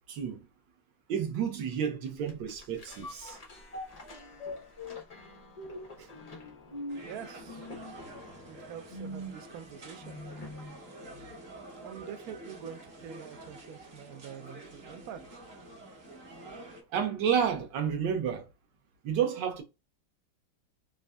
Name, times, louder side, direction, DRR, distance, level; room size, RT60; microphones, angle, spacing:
voice 1, 0.1-0.5 1.1-3.4 6.0-6.1 16.9-18.5 19.0-19.6, right 8 dB, 70° right, 1.3 m, -30 dB
sound 1, 2.3-10.8 11.3-11.4, left 1 dB, 70° left, 0.3 m, -44 dB
sound 2, 6.9-16.8, right 1 dB, 45° right, 0.9 m, -48 dB
voice 2, 7.0-7.7 8.6-10.2 11.8-15.4, right 8 dB, 85° right, 0.8 m, -45 dB
4.0 x 2.6 x 2.2 m
omnidirectional pair, 2.2 m